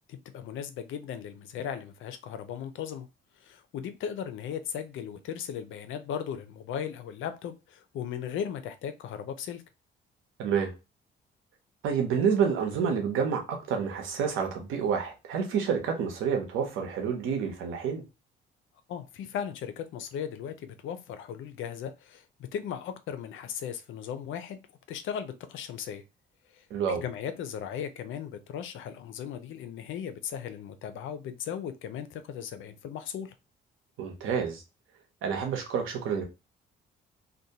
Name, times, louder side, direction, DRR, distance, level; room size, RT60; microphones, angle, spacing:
voice 1, 0.1-3.1 3.4-9.6 18.9-22.2 22.5-24.6 24.9-26.0 26.5-33.3, left 8 dB, 75° left, 0.5 m, -37 dB
voice 2, 10.4-10.7 11.8-18.0 26.7-27.0 34.0-34.6 35.2-36.2, right 6 dB, 85° right, 0.8 m, -28 dB
2.6 x 2.1 x 2.7 m
cardioid pair, 90°, 20 cm